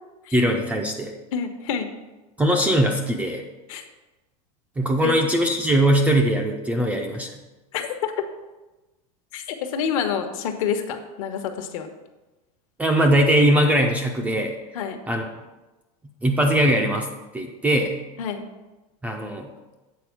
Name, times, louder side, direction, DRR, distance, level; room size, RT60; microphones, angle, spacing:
voice 1, 0.3-1.1 2.4-3.4 4.8-7.3 12.8-14.5 15.1-15.2 16.2-17.1 17.3-17.9 19.0-19.5, right 1 dB, 5° right, 2 dB, 0.4 m, -20 dB
voice 2, 1.3-1.9 3.7-3.8 5.0-5.1 7.7-8.3 9.3-11.9 14.7-15.0 18.2-18.5, left 7 dB, 60° left, 6 dB, 1.0 m, -27 dB
8.4 x 4.5 x 5.9 m, 1.1 s
supercardioid pair, 170°, 19 cm